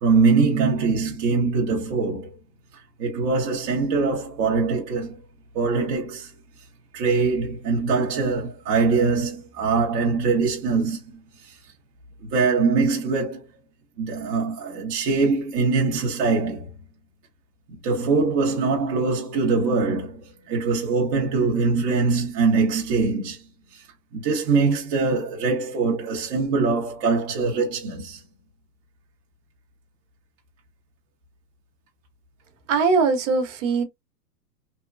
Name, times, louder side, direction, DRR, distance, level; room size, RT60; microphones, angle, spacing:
voice 1, 0.0-2.3 3.0-5.2 5.5-6.3 6.9-11.2 12.3-13.4 14.0-16.7 17.8-23.4 24.1-28.2, right 4 dB, 20° right, 0.6 m, -22 dB
voice 2, 32.7-33.8, right 4 dB, 50° right, 0.9 m, -21 dB
3.0 x 2.2 x 2.4 m
hypercardioid pair, 145°, 49 cm